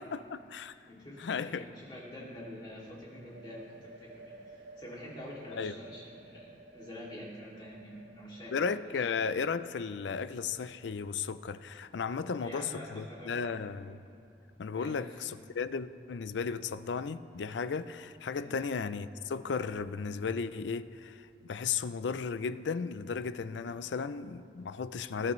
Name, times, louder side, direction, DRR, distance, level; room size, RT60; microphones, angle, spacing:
voice 1, 0.0-0.8 1.2-1.7 5.6-5.7 8.5-14.0 14.6-25.3, left 5 dB, 85° left, 0.4 m, -35 dB
voice 2, 0.9-9.0 12.2-13.7 14.7-15.3 18.4-18.7, left 1 dB, 25° left, 2.5 m, -47 dB
sound 1, 3.1-10.7, right 3 dB, 80° right, 1.5 m, -55 dB
20.5 x 10.5 x 3.1 m
head